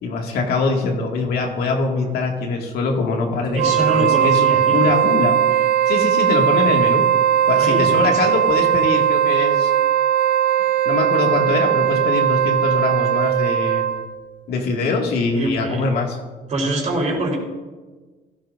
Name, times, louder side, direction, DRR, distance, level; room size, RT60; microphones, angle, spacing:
voice 1, 0.0-5.4 5.9-7.0 7.5-9.7 10.9-13.9 14.5-16.2, left 3 dB, 70° left, 1 dB, 2.1 m, -23 dB
voice 2, 3.5-4.8 7.6-8.3 15.3-15.8 16.5-17.4, right 1 dB, 45° right, -2 dB, 4.2 m, -24 dB
Wind instrument woodwind instrument, 3.5-14.1, right 9 dB, 70° right, 1.0 m, -18 dB
16.0 x 12.5 x 2.6 m, 1.3 s
cardioid pair, 110°, 17 cm